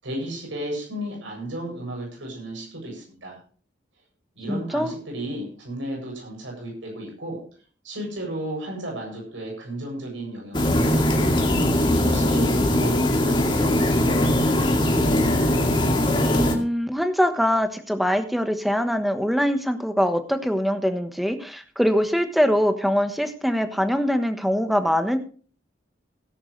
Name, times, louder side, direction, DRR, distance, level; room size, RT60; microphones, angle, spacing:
voice 1, 0.0-3.4 4.4-7.5 7.8-11.2 11.7-15.2, right 1 dB, 90° right, 0 dB, 7.8 m, -34 dB
voice 2, 4.5-4.9 16.3-25.2, equal, ahead, 8 dB, 1.2 m, -23 dB
sound 1, 10.5-16.6, left 1 dB, 25° left, 2.2 m, -20 dB
17.0 x 11.0 x 3.3 m, 0.41 s
head